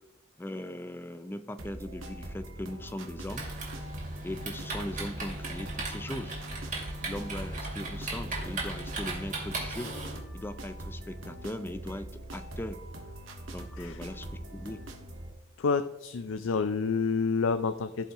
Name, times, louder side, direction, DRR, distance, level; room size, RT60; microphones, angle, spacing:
voice 1, 0.4-3.5 4.2-6.4 7.0-10.0 10.3-12.8 13.5-14.8, left 1 dB, 10° left, 10 dB, 0.4 m, -39 dB
sound 1, 1.6-15.3, right 1 dB, 75° right, 1.5 m, -43 dB
Typing, 3.3-10.1, right 2 dB, 40° right, 2.4 m, -37 dB
voice 2, 15.6-18.1, left 5 dB, 75° left, 11 dB, 0.4 m, -29 dB
16.0 x 5.4 x 2.9 m, 0.97 s
head